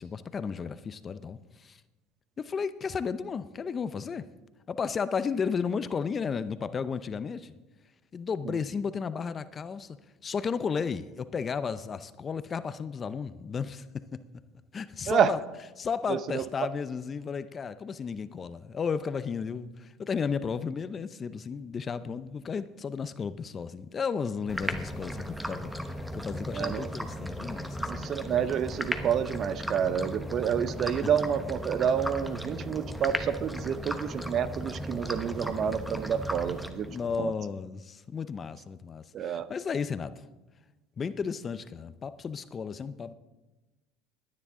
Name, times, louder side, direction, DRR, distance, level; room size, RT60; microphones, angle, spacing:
voice 1, 0.0-1.8 2.4-4.3 4.7-7.5 8.1-10.0 10.2-14.2 14.7-15.4 15.8-28.1 36.9-40.1 41.0-43.1, left 6 dB, 30° left, 0.6 m, -33 dB
sound 1, 24.5-37.2, equal, 5° right, 1.0 m, -36 dB
voice 2, 26.5-26.9 27.9-36.9 37.2-37.3 39.1-39.5, right 8 dB, 45° right, 0.7 m, -28 dB
22.5 x 9.8 x 3.7 m
supercardioid pair, 105°, 0 cm